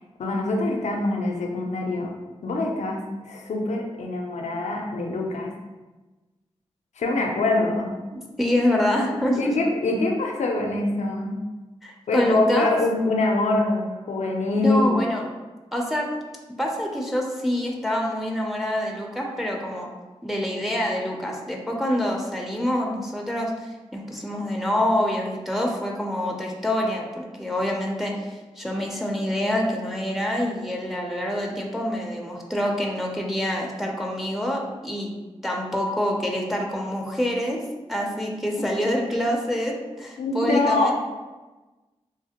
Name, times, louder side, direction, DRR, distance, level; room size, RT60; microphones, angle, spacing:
voice 1, 0.2-2.1 2.4-5.5 7.0-7.9 9.4-11.4 12.1-15.0 40.2-40.9, left 2 dB, 85° left, 1 dB, 0.4 m, -24 dB
voice 2, 8.4-9.6 11.8-12.7 14.6-15.2 15.7-16.1 16.6-19.9 20.2-35.1 35.4-37.6 37.9-40.9, left 1 dB, ahead, 0 dB, 0.5 m, -26 dB
3.2 x 2.1 x 2.8 m, 1.2 s
cardioid pair, 50°, 12 cm